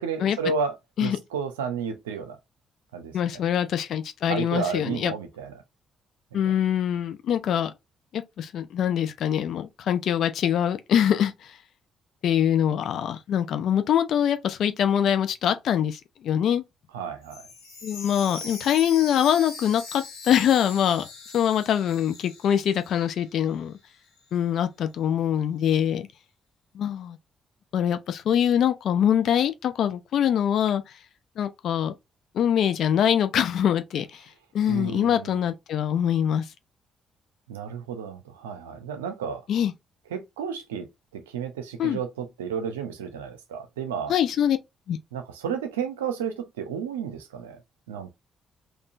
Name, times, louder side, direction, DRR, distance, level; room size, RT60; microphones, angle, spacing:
voice 1, 0.0-2.4 2.9-3.4 4.3-5.5 16.9-17.4 34.7-35.5 37.5-39.4 40.1-44.1 45.1-47.6 47.9-48.1, right 6 dB, 85° right, 0.6 m, -32 dB
voice 2, 3.1-5.1 6.3-7.7 8.1-11.3 12.2-16.6 17.8-21.0 21.3-23.7 24.3-26.1 26.7-27.2 27.7-30.8 31.4-31.9 32.3-34.2 34.5-36.4 39.5-39.7 41.8-42.0 44.1-44.6 44.9-45.0, left 9 dB, 65° left, 0.6 m, -24 dB
Chime, 17.2-23.2 23.5-23.6 24.2-24.3, left 4 dB, 85° left, 1.5 m, -41 dB
3.7 x 2.6 x 2.5 m
hypercardioid pair, 45°, 0 cm